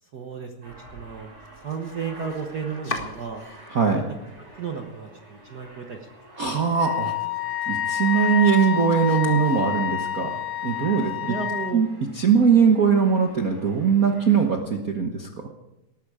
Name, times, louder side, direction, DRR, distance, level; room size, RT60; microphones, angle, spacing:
voice 1, 0.0-3.4 3.9-4.0 4.6-6.1 11.0-11.9, right 6 dB, 65° right, 3 dB, 1.0 m, -34 dB
Aircraft, 0.6-14.6, right 1 dB, 45° right, 8.3 m, -48 dB
Domestic sounds home sounds, 1.4-3.9 4.3-5.0 5.4-5.5 5.9-6.0 6.4-10.1, left 3 dB, 25° left, 1.3 m, -41 dB
voice 2, 6.4-7.1 7.7-11.1 11.7-11.9 12.2-15.3, right 6 dB, 85° right, 2 dB, 0.7 m, -21 dB
Wind instrument woodwind instrument, 6.8-11.7, left 10 dB, 65° left, 2.9 m, -28 dB
19.0 x 13.5 x 4.9 m, 0.93 s
omnidirectional pair, 3.5 m